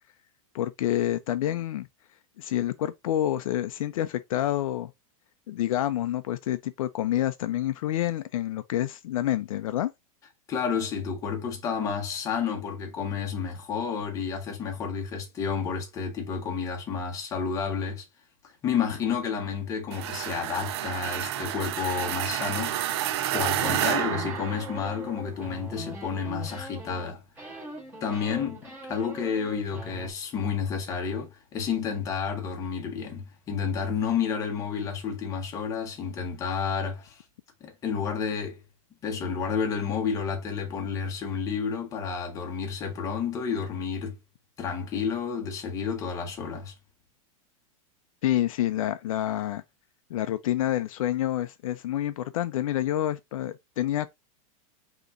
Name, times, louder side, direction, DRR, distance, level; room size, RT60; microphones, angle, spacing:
voice 1, 0.5-1.9 2.4-4.9 5.5-9.9 48.2-49.6 50.1-54.1, left 12 dB, 70° left, 0.5 m, -28 dB
voice 2, 10.5-18.0 18.6-23.0 23.3-27.2 28.0-37.1 37.6-38.6 39.0-44.2 44.6-46.7, left 6 dB, 15° left, 0.9 m, -30 dB
sound 1, 19.9-25.1, right 12 dB, 50° right, 0.4 m, -30 dB
sound 2, 23.5-27.1 27.4-30.1, right 1 dB, 10° right, 1.9 m, -41 dB
5.2 x 3.0 x 2.5 m
supercardioid pair, 170°, 18 cm